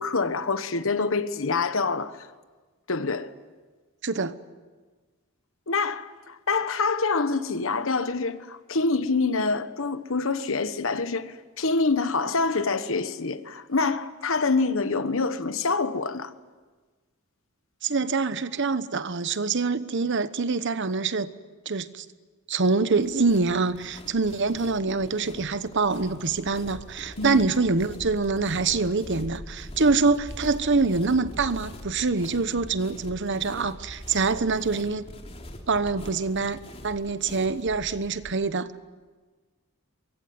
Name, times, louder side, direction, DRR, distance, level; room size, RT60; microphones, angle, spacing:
voice 1, 0.0-2.3 2.9-3.3 5.7-16.3 27.2-27.4, left 4 dB, 65° left, 1.3 m, -26 dB
voice 2, 4.0-4.4 17.8-21.3 21.7-22.1 22.5-35.0 35.7-36.6 36.8-38.7, right 4 dB, 60° right, 1.1 m, -25 dB
sound 1, 23.0-38.3, equal, 30° left, 3.4 m, -43 dB
24.0 x 22.5 x 9.5 m
head